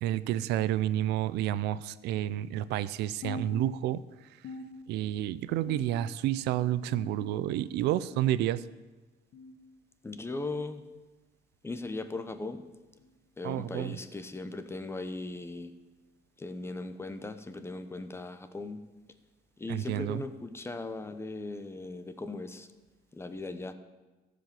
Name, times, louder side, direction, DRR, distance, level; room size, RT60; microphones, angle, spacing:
voice 1, 0.0-4.0 4.9-8.6 13.4-14.0 19.7-20.2, right 13 dB, 85° right, 17 dB, 0.5 m, -30 dB
sound 1, 3.2-4.1 4.4-5.2 5.7-6.3 6.9-7.5 8.1-8.5 9.3-9.6 10.5-10.8 11.8-12.0 13.0-13.2 14.2-14.4 15.4-15.6 16.6-16.7 17.9-18.0, left 2 dB, 60° left, 1.5 m, -45 dB
voice 2, 10.0-10.8 11.6-12.6 13.4-15.7 16.4-18.8 19.6-22.7 23.1-23.7, left 2 dB, 15° left, 10 dB, 0.9 m, -38 dB
14.0 x 5.1 x 8.2 m, 1.2 s
cardioid pair, 110°, 17 cm